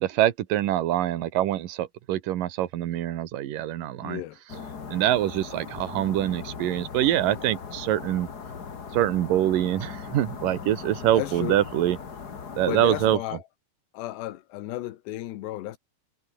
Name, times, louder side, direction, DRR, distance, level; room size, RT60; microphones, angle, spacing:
voice 1, 0.0-4.2 4.9-8.3 8.9-12.0 12.6-13.2, right 13 dB, 65° right, 2.7 m, -25 dB
voice 2, 4.0-4.4 11.1-11.6 12.6-13.4 13.9-15.8, left 15 dB, 85° left, 3.4 m, -33 dB
sound 1, 4.5-13.2, left 6 dB, 40° left, 1.4 m, -39 dB
omnidirectional pair, 4.9 m